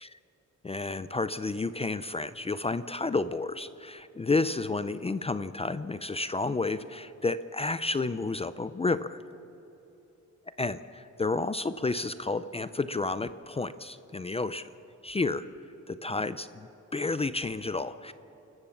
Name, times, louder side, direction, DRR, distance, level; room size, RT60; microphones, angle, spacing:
voice 1, 0.6-9.2 10.6-14.6 15.0-15.5 15.9-18.1, left 3 dB, 20° left, 13 dB, 0.5 m, -31 dB
29.5 x 14.5 x 7.2 m, 2.9 s
wide cardioid pair, 145°, 30 cm